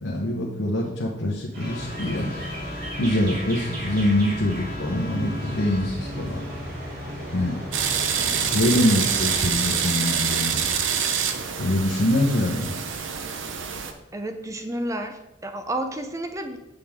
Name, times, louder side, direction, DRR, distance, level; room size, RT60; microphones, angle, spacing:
voice 1, 0.0-2.3 3.0-6.4 7.3-7.6 8.2-10.6 11.6-12.7, left 1 dB, 90° left, -2 dB, 1.1 m, -24 dB
sound 1, 1.5-9.4, equal, 50° right, 3.0 m, -34 dB
Trumpet, 1.6-5.9, left 2 dB, 50° left, 1.5 m, -42 dB
sound 2, 7.7-13.9, right 7 dB, 80° right, 0.7 m, -26 dB
voice 2, 14.1-16.6, right 1 dB, 15° right, 7 dB, 0.6 m, -31 dB
7.7 x 6.9 x 3.6 m, 0.96 s
head